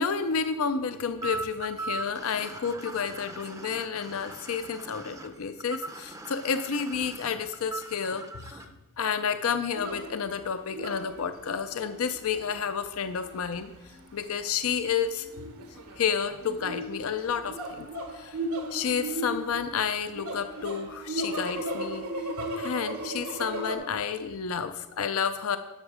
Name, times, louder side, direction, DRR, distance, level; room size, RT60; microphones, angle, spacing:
voice 1, 0.0-8.7 9.0-13.7 14.1-15.3 15.7-17.9 18.1-18.4 18.7-22.0 22.4-25.6, left 6 dB, 65° left, 10 dB, 0.5 m, -30 dB
sound 1, 1.2-8.7, right 3 dB, 15° right, 0.6 m, -40 dB
sound 2, 9.7-23.7, right 1 dB, 80° right, 1.4 m, -36 dB
11.5 x 6.3 x 4.9 m, 1.1 s
head